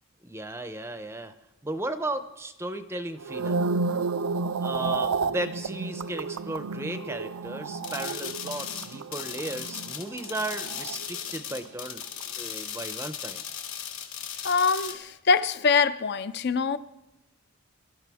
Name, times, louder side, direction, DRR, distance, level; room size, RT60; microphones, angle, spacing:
voice 1, 0.2-1.3 1.6-3.7 4.6-12.0 12.3-13.4, right 2 dB, 10° right, 0.6 m, -35 dB
sound 1, 3.2-11.6 11.8-12.2, right 4 dB, 80° right, 0.5 m, -32 dB
sound 2, 7.8-14.9, left 9 dB, 70° left, 2.0 m, -37 dB
voice 2, 14.4-16.8, left 5 dB, 50° left, 0.5 m, -24 dB
23.5 x 12.5 x 3.5 m
head